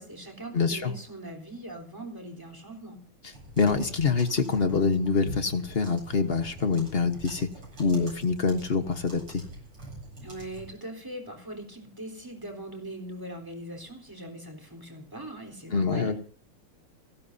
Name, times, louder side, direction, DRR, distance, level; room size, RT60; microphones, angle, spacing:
voice 1, 0.0-3.0 10.2-16.1, right 1 dB, 10° right, 3 dB, 3.7 m, -41 dB
voice 2, 0.5-0.9 3.6-7.5 7.8-9.4 15.7-16.1, left 4 dB, 40° left, 8 dB, 1.0 m, -25 dB
sound 1, 3.3-10.7, right 1 dB, 80° right, 9.1 m, -45 dB
29.0 x 13.0 x 2.7 m, 0.42 s
omnidirectional pair, 2.4 m